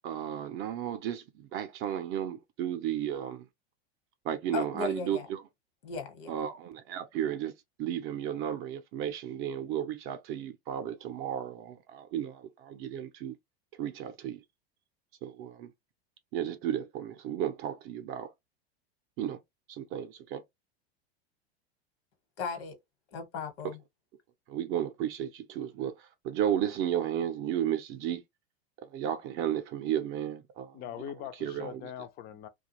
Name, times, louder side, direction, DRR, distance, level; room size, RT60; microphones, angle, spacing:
voice 1, 0.0-3.5 4.2-5.4 6.3-7.5 7.8-13.4 13.8-14.4 15.2-15.7 16.3-18.3 19.2-19.4 19.7-20.4 23.6-23.7 24.5-28.2 28.8-31.1 31.4-31.9, right 10 dB, 40° right, 0.5 m, -33 dB
voice 2, 4.5-5.3 5.8-6.3 22.4-22.8 23.1-23.8, left 5 dB, 65° left, 1.1 m, -36 dB
voice 3, 30.7-32.5, left 10 dB, 30° left, 0.4 m, -41 dB
2.4 x 2.2 x 2.9 m
hypercardioid pair, 110°, 32 cm